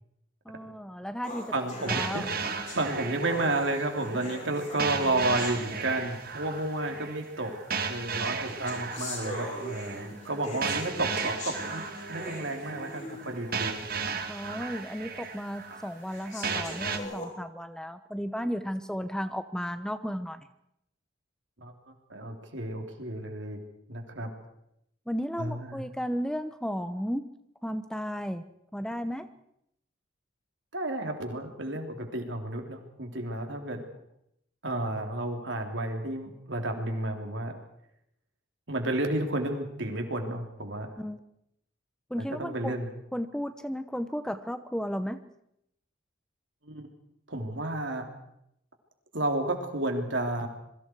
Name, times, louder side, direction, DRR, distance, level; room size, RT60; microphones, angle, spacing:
voice 1, 0.5-1.5 1.9-2.3 14.3-20.5 25.1-27.3 27.6-28.4 28.7-29.3 41.0-41.2 42.1-42.8 43.1-45.2, equal, 5° left, 10 dB, 0.8 m, -34 dB
sound 1, 1.2-6.4 7.2-7.3 8.1-13.4 13.8-13.9 14.4-14.5 15.2-15.3 16.1-17.2, left 1 dB, 40° left, 7.0 m, -41 dB
voice 2, 1.5-2.5 2.7-7.5 7.9-11.8 12.1-14.0 21.6-21.7 22.1-23.6 23.9-24.3 25.4-25.8 30.7-33.8 34.6-37.5 38.7-40.9 42.2-42.9 46.6-46.9 47.3-48.1 49.1-50.5, right 2 dB, 70° right, 3 dB, 3.6 m, -31 dB
sound 2, 1.9-17.0, right 5 dB, 50° right, 2.1 m, -35 dB
26.5 x 23.0 x 4.7 m, 0.79 s
head